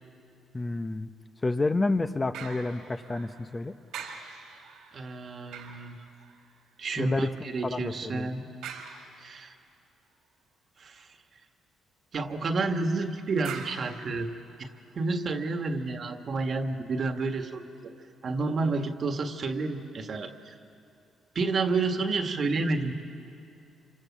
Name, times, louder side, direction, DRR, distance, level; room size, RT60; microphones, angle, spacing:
voice 1, 0.5-1.1 1.4-3.7 7.0-7.3 7.6-8.3, left 2 dB, 25° left, 8 dB, 0.9 m, -29 dB
sound 1, 2.3-3.6 3.9-6.7 8.6-9.6 13.4-14.9 15.5-15.6, right 7 dB, 90° right, 3.1 m, -44 dB
voice 2, 4.9-6.1 6.8-8.4 9.2-9.5 10.8-11.1 12.1-14.3 14.6-14.7 14.9-17.9 18.2-20.5 21.3-22.9, right 3 dB, 50° right, 6 dB, 1.8 m, -30 dB
27.0 x 25.5 x 7.4 m, 2.7 s
cardioid pair, 90°, 0 cm